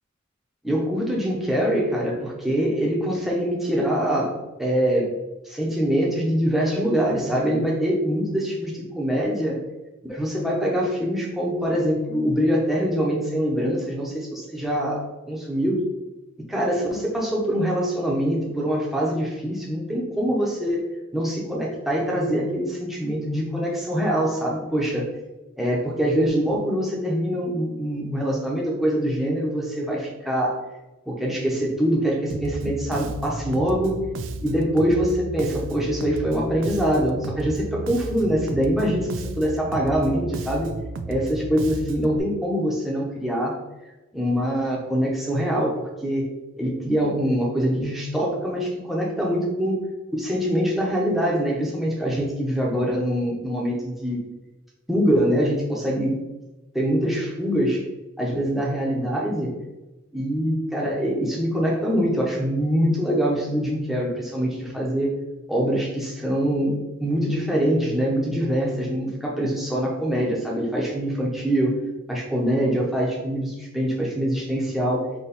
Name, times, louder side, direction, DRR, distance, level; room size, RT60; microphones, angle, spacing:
voice 1, 0.6-5.1 5.4-9.6 10.0-15.8 16.5-20.8 21.1-25.0 25.6-30.6 31.1-33.9 34.4-39.1 39.4-40.7 41.1-43.6 44.1-46.3 46.6-49.8 50.1-54.2 54.9-56.2 56.7-57.8 58.2-59.5 60.1-65.1 65.5-66.7 67.0-71.8 72.1-75.0, equal, ahead, -4 dB, 0.8 m, -24 dB
Bass guitar, 32.3-42.2, right 3 dB, 65° right, 0.4 m, -33 dB
4.3 x 3.0 x 4.1 m, 1.1 s
head